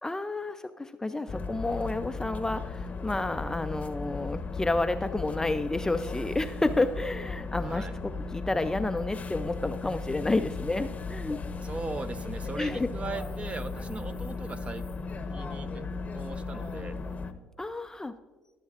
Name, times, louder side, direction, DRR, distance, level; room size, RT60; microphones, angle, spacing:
voice 1, 0.0-11.4 12.6-12.9 17.6-18.2, left 2 dB, 15° left, 10 dB, 0.4 m, -30 dB
sound 1, 1.3-17.3, left 4 dB, 35° left, 0.8 m, -36 dB
voice 2, 7.6-7.9 11.6-14.8 15.3-15.8 16.1-17.0, right 3 dB, 30° right, 11 dB, 0.8 m, -38 dB
20.5 x 7.3 x 2.4 m, 1.3 s
supercardioid pair, 70°, 4 cm